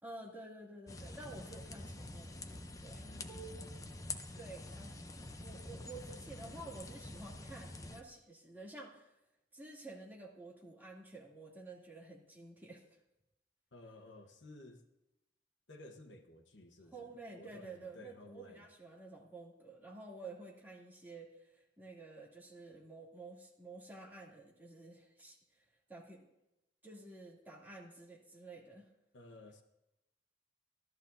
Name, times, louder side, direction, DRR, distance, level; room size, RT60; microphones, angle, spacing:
voice 1, 0.0-3.8 4.4-5.0 5.4-9.1 9.5-12.8 16.9-26.3 26.8-28.9, right 2 dB, 10° right, -4 dB, 2.6 m, -51 dB
sound 1, 0.9-8.0, left 2 dB, 20° left, 0.7 m, -47 dB
voice 2, 3.0-3.5 13.7-14.9 15.7-17.1 17.4-18.6 29.1-29.6, left 1 dB, 80° left, 5 dB, 1.1 m, -55 dB
15.0 x 13.0 x 2.7 m, 0.91 s
head